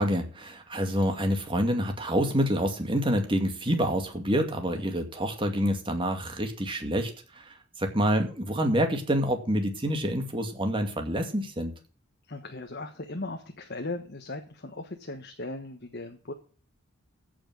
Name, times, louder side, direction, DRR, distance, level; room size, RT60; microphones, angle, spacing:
voice 1, 0.0-11.7, equal, 25° right, 4 dB, 2.3 m, -27 dB
voice 2, 12.3-16.3, left 2 dB, 50° left, 4 dB, 1.3 m, -38 dB
15.0 x 6.2 x 6.1 m, 0.40 s
head